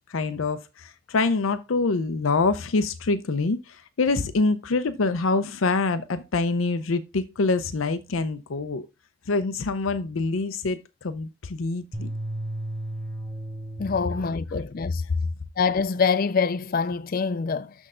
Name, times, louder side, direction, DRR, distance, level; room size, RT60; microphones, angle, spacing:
voice 1, 0.1-8.9 9.3-12.1 15.1-15.3, left 3 dB, 85° left, 0.6 m, -25 dB
sound 1, 11.9-14.4, right 1 dB, ahead, 0.7 m, -34 dB
voice 2, 13.8-15.0 15.6-17.7, left 5 dB, 45° left, 0.4 m, -25 dB
6.6 x 6.2 x 3.7 m
head